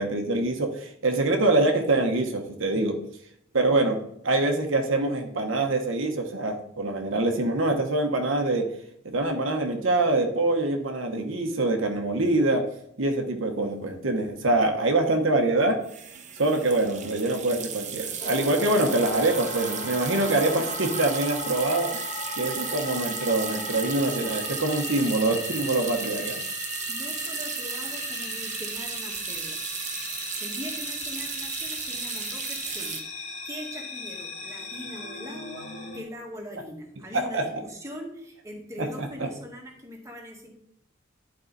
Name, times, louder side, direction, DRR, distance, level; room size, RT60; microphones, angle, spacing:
voice 1, 0.0-3.0 3.5-4.0 4.2-8.7 9.1-12.6 13.0-15.8 16.4-22.0 22.3-26.4 37.1-37.5 38.8-39.3, right 2 dB, 70° right, 3 dB, 1.1 m, -25 dB
sound 1, 13.9-14.0 14.2-14.5 15.8-33.0, right 7 dB, 40° right, 0.9 m, -35 dB
sound 2, 18.2-36.0, left 3 dB, 35° left, 1.5 m, -37 dB
voice 2, 26.9-40.5, equal, 15° right, 0 dB, 1.6 m, -41 dB
11.0 x 4.7 x 4.0 m, 0.74 s
head